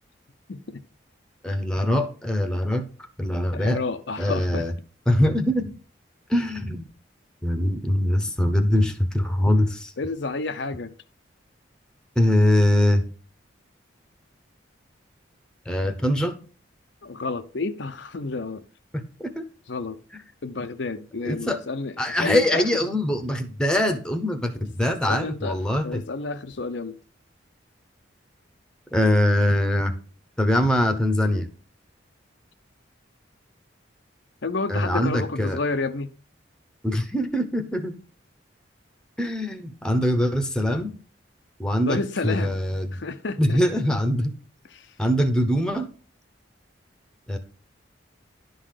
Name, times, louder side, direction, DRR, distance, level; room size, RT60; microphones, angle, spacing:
voice 1, 0.5-0.8 3.5-4.7 10.0-10.9 17.0-18.6 19.7-20.0 20.4-22.8 24.6-24.7 25.1-27.0 34.4-36.1 41.8-42.6 42.9-43.8 44.7-44.9, left 3 dB, 65° left, 0.7 m, -30 dB
voice 2, 1.4-2.8 3.2-3.8 4.2-4.7 5.1-5.7 6.3-6.8 7.4-9.9 12.2-13.1 15.7-16.4 18.9-19.4 21.2-21.6 22.0-26.0 28.9-29.9 30.4-31.5 34.7-35.6 36.8-38.0 39.2-40.9 41.6-42.0 42.2-43.0 43.4-44.3 45.0-45.9 47.3-47.4, left 1 dB, 5° left, 0.9 m, -23 dB
11.0 x 3.9 x 6.5 m
head